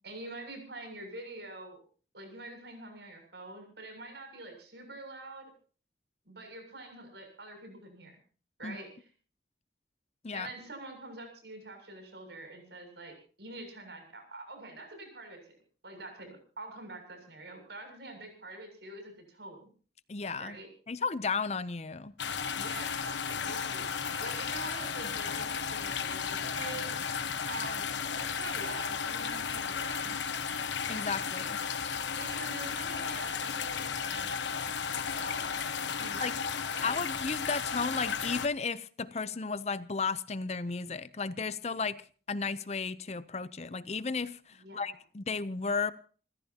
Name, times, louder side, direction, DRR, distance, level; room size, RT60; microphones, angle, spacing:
voice 1, 0.0-1.8 2.1-5.5 6.2-8.2 8.6-9.1 10.3-15.4 15.8-19.7 20.4-20.7 22.5-23.9 24.2-26.9 27.4-27.9 28.1-30.2 32.2-34.4 35.2-35.4 36.0-36.3 36.7-37.0 44.6-44.9, right 2 dB, 70° right, 7.2 m, -45 dB
voice 2, 20.1-20.6 20.9-22.1 30.9-31.6 36.2-36.3 36.8-42.0 42.3-45.9, left 4 dB, 35° left, 0.6 m, -34 dB
sound 1, 22.2-38.5, left 6 dB, 85° left, 1.2 m, -34 dB
28.5 x 15.0 x 2.9 m
head